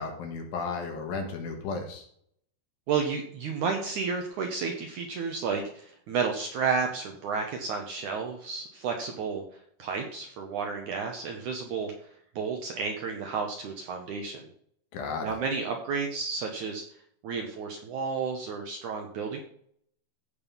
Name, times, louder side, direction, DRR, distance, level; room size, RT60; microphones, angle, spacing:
voice 1, 0.0-2.0 14.9-15.3, left 4 dB, 65° left, 3 dB, 3.2 m, -34 dB
voice 2, 2.9-9.4 9.8-11.9 12.4-14.5 15.2-16.8 17.2-19.4, right 5 dB, 70° right, 3 dB, 2.0 m, -31 dB
15.5 x 5.4 x 5.6 m, 0.65 s
omnidirectional pair, 4.7 m